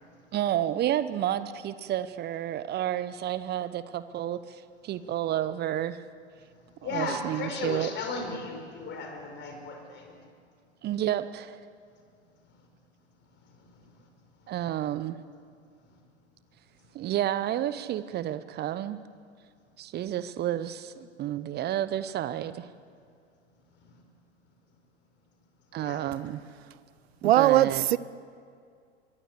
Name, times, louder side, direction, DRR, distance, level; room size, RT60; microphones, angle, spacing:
voice 1, 0.3-6.0 6.8-7.9 10.8-11.6 14.5-15.2 16.9-19.0 19.8-22.7 25.7-26.4 27.2-28.0, right 12 dB, 30° right, 0.9 m, -30 dB
voice 2, 6.6-10.2 13.6-13.8 25.7-26.0, left 3 dB, 30° left, 5.3 m, -35 dB
voice 3, 27.2-28.0, right 14 dB, 60° right, 0.8 m, -20 dB
24.5 x 24.0 x 8.3 m
figure-of-eight pair, 85°, 35 cm